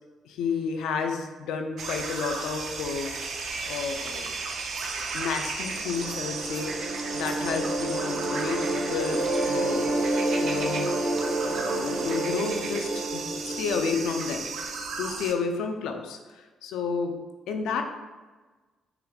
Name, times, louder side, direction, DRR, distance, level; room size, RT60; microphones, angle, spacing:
voice 1, 0.2-4.3 5.1-9.9 10.4-10.9 11.4-14.5 15.0-17.8, left 5 dB, 85° left, 4 dB, 0.4 m, -31 dB
sound 1, 1.8-15.3, right 4 dB, 65° right, 0.5 m, -35 dB
sound 2, 5.7-14.8, right 1 dB, 45° right, 1.4 m, -29 dB
4.7 x 3.3 x 2.3 m, 1.3 s
cardioid pair, 90°, 0 cm